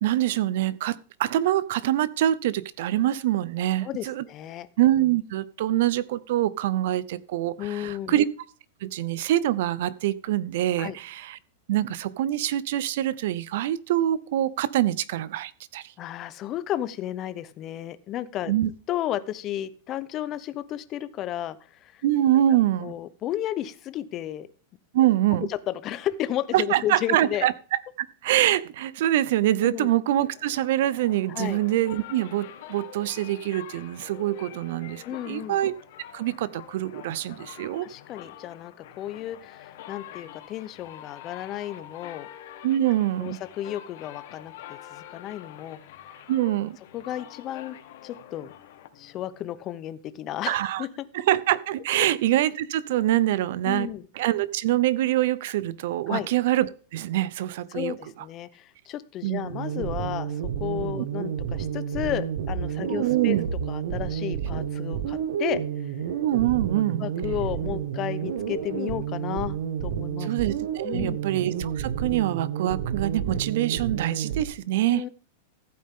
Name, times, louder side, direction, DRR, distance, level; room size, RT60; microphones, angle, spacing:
voice 1, 0.0-4.2 4.8-8.3 8.8-11.4 11.7-15.9 18.5-18.7 22.0-22.9 24.9-25.5 26.5-35.7 36.1-37.9 42.6-43.4 46.3-46.8 50.5-50.9 51.1-53.9 54.2-57.9 59.2-59.5 60.9-61.1 62.9-63.5 66.2-67.1 70.2-75.0, right 13 dB, 60° right, 19 dB, 0.7 m, -25 dB
voice 2, 3.8-4.7 7.6-8.2 10.8-11.0 16.0-18.5 18.9-22.0 22.8-24.5 25.5-27.5 29.6-29.9 31.3-31.6 35.0-35.6 37.8-42.3 43.2-45.8 46.9-48.5 49.0-50.9 53.6-54.1 56.1-56.3 57.7-63.4 63.7-65.6 67.0-70.3 70.8-71.2 74.9-75.1, left 12 dB, 25° left, 14 dB, 0.8 m, -33 dB
sound 1, 30.1-49.5, left 12 dB, 55° left, 1.6 m, -46 dB
sound 2, 59.5-74.4, right 8 dB, 80° right, 1.7 m, -30 dB
15.0 x 8.6 x 3.7 m, 0.41 s
supercardioid pair, 165°, 0 cm